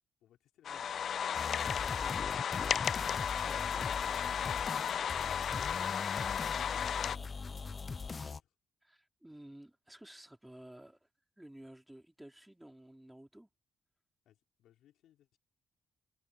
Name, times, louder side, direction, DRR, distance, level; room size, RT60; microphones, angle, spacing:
voice 1, 0.2-1.1 14.2-15.4, left 12 dB, 80° left, 4.2 m, -67 dB
sound 1, 0.6-7.2, left 8 dB, 60° left, 0.3 m, -34 dB
sound 2, 1.3-8.4, left 4 dB, 35° left, 0.7 m, -41 dB
voice 2, 1.9-2.5 3.4-4.0 8.8-11.1 11.4-13.5, right 1 dB, 5° right, 4.2 m, -54 dB
cardioid pair, 90°, 0 cm